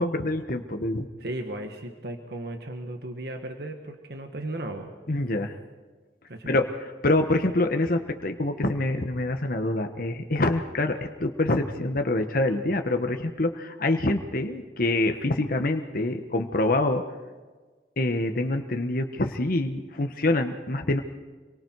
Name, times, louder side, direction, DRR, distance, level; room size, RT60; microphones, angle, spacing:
voice 1, 0.0-1.1 5.1-5.5 6.5-6.7 7.0-17.0 18.0-21.0, left 2 dB, 55° left, 5 dB, 1.2 m, -25 dB
voice 2, 1.2-4.9 6.3-6.6, right 1 dB, 65° right, 4 dB, 1.7 m, -36 dB
27.0 x 23.0 x 4.7 m, 1.3 s
head